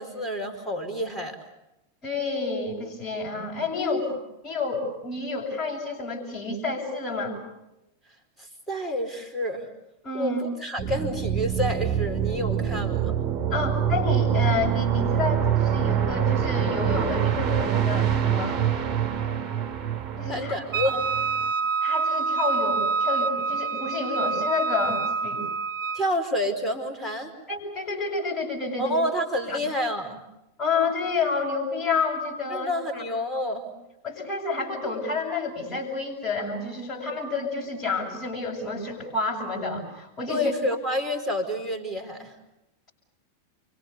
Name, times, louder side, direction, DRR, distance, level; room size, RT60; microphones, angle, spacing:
voice 1, 0.0-1.4 3.8-4.1 8.4-9.7 10.1-13.1 20.3-21.1 25.9-27.3 28.8-30.2 32.5-33.6 40.3-42.3, left 1 dB, ahead, 2 dB, 4.3 m, -29 dB
voice 2, 2.0-4.1 4.4-7.4 10.0-10.4 13.5-18.6 20.2-20.6 20.8-20.9 21.8-25.4 27.5-28.9 29.5-29.6 30.6-33.0 34.0-40.5, left 3 dB, 25° left, -5 dB, 7.3 m, -29 dB
sound 1, 10.8-21.5, right 9 dB, 20° right, 2.9 m, -25 dB
Wind instrument woodwind instrument, 20.7-26.1, right 5 dB, 50° right, 0.8 m, -27 dB
29.5 x 24.5 x 6.9 m, 0.92 s
figure-of-eight pair, 90°, 0 cm